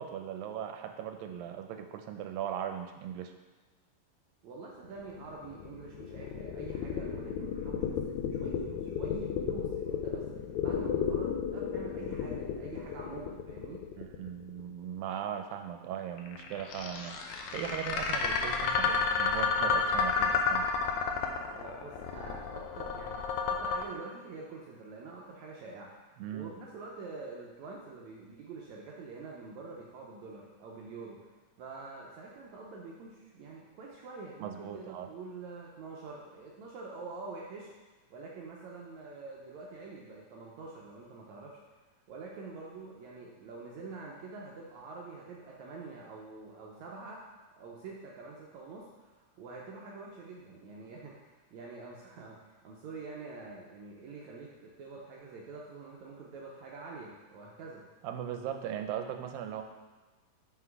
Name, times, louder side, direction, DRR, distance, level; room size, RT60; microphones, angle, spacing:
voice 1, 0.0-3.3 14.0-20.7 26.2-26.5 34.4-35.1 58.0-59.6, right 9 dB, 90° right, 6 dB, 2.3 m, -38 dB
voice 2, 4.4-10.2 10.6-13.8 21.5-31.3 31.6-37.7 38.1-41.6 42.1-47.2 47.5-57.9, right 3 dB, 75° right, -3 dB, 1.8 m, -46 dB
sound 1, 4.9-14.8 16.2-23.8, left 6 dB, 80° left, 1.8 m, -32 dB
5.9 x 5.8 x 4.7 m, 1.3 s
omnidirectional pair, 4.0 m